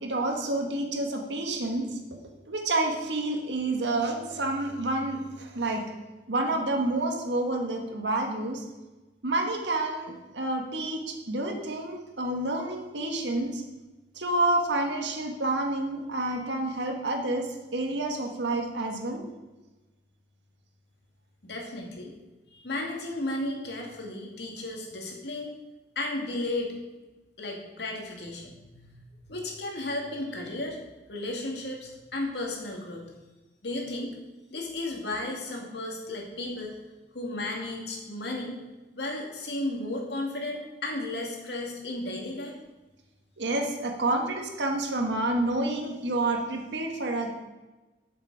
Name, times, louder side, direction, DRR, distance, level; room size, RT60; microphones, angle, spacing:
voice 1, 0.0-1.9 2.5-5.8 6.3-8.6 9.2-13.6 14.2-17.5 17.7-19.2 43.4-47.3, right 2 dB, 80° right, 3 dB, 1.8 m, -29 dB
voice 2, 21.4-22.1 22.5-25.5 26.0-26.7 27.4-30.8 31.1-33.1 33.6-34.1 34.5-36.7 37.1-38.6 38.9-42.6, left 2 dB, 65° left, 0 dB, 2.4 m, -34 dB
12.0 x 7.3 x 4.9 m, 1.1 s
head